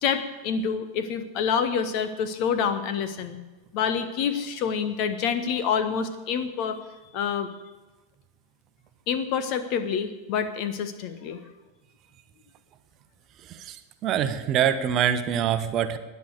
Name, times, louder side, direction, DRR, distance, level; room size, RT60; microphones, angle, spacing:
voice 1, 0.0-3.4 3.7-6.8 7.1-7.5 9.1-11.4, left 7 dB, 40° left, 12 dB, 1.3 m, -27 dB
voice 2, 14.0-16.0, right 9 dB, 35° right, 10 dB, 1.0 m, -24 dB
20.0 x 6.9 x 8.3 m, 1.2 s
figure-of-eight pair, 90°, 0 cm